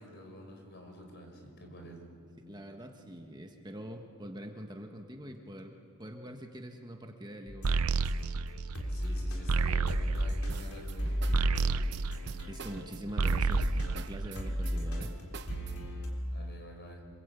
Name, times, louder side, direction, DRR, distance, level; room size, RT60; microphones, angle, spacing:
voice 1, 0.0-2.2 8.9-12.0 16.3-17.0, equal, 50° left, 4 dB, 4.6 m, -49 dB
voice 2, 2.4-5.7 6.0-8.0 12.5-15.1, equal, 20° right, 3 dB, 1.5 m, -44 dB
sound 1, 7.5-12.9 13.2-16.1, equal, 85° left, 4.1 m, -35 dB
sound 2, 7.6-12.8 13.1-14.8, right 4 dB, 90° right, 0.6 m, -31 dB
sound 3, 10.5-16.0, right 4 dB, 50° right, 0.9 m, -46 dB
27.0 x 22.0 x 8.2 m, 2.4 s
head